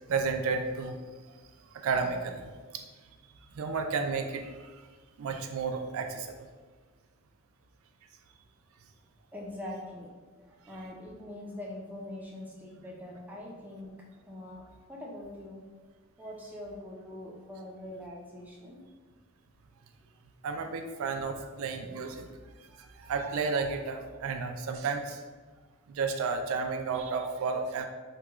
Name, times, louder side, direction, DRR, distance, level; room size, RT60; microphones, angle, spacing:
voice 1, 0.1-1.0 1.7-2.8 3.5-4.8 5.2-6.4 20.4-22.3 22.8-25.2 25.9-27.9, right 4 dB, 70° right, 6 dB, 0.3 m, -32 dB
voice 2, 9.3-15.6 16.2-18.8 22.3-22.4 22.7-22.8, left 1 dB, 10° right, -3 dB, 0.5 m, -43 dB
3.0 x 2.2 x 3.5 m, 1.4 s
head